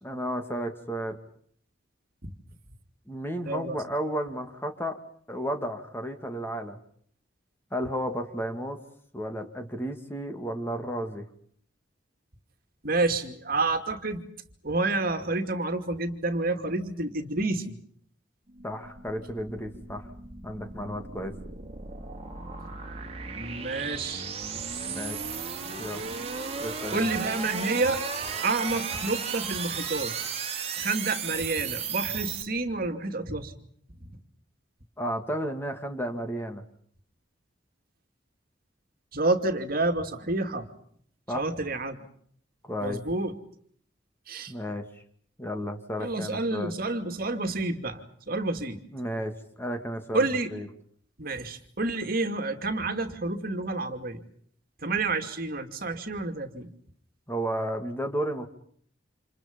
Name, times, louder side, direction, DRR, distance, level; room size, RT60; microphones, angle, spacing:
voice 1, 0.0-1.2 3.1-5.0 5.3-6.8 7.7-8.8 9.1-11.2 18.6-20.1 20.4-21.4 24.9-25.3 25.8-26.1 26.6-27.1 35.0-36.6 41.3-41.4 42.6-43.0 44.5-44.8 45.4-46.7 48.9-50.2 50.5-50.7 57.3-58.5, equal, 10° left, 5 dB, 2.5 m, -33 dB
voice 2, 3.5-3.8 12.8-14.2 14.6-17.8 23.3-24.3 26.9-28.0 28.4-30.1 30.8-33.5 39.1-40.7 41.3-42.0 42.8-43.3 44.3-44.5 46.0-48.8 50.1-50.5 51.2-54.2 54.8-56.7, right 2 dB, 50° right, 7 dB, 2.6 m, -29 dB
sound 1, 18.5-32.4, right 6 dB, 35° right, 3.0 m, -35 dB
29.5 x 28.0 x 5.4 m, 0.62 s
head